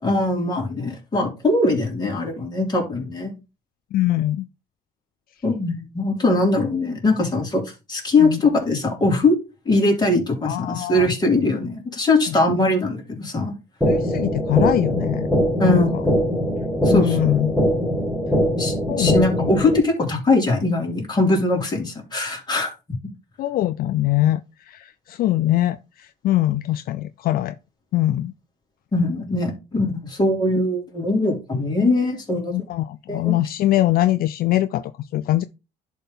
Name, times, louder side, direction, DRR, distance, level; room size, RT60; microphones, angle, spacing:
voice 1, 0.0-3.3 5.4-7.6 7.9-9.4 9.6-13.5 15.6-16.2 16.8-17.2 18.6-22.7 28.9-32.6 33.1-33.4, left 2 dB, 25° left, 3.5 m, -21 dB
voice 2, 3.9-4.5 8.2-8.4 10.4-11.1 12.3-12.4 13.9-15.3 15.6-16.0 16.9-17.5 18.9-19.5 23.4-27.6 27.9-28.3 32.5-34.8 35.1-35.4, left 14 dB, 60° left, 0.4 m, -22 dB
sound 1, 13.8-19.8, equal, ahead, 1.9 m, -22 dB
11.0 x 3.7 x 3.9 m
cardioid pair, 110°, 17 cm